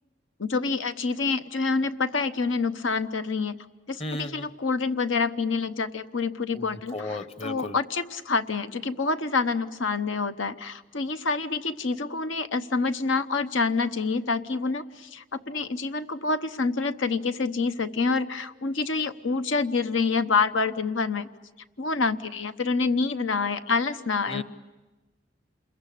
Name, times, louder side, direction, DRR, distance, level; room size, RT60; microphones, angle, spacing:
voice 1, 0.4-3.6 3.9-21.3 21.8-24.4, left 4 dB, 85° left, 10 dB, 1.0 m, -27 dB
voice 2, 4.0-4.5 6.5-7.7 24.3-24.4, left 1 dB, 30° left, 11 dB, 1.0 m, -35 dB
28.0 x 22.0 x 8.6 m, 1.2 s
head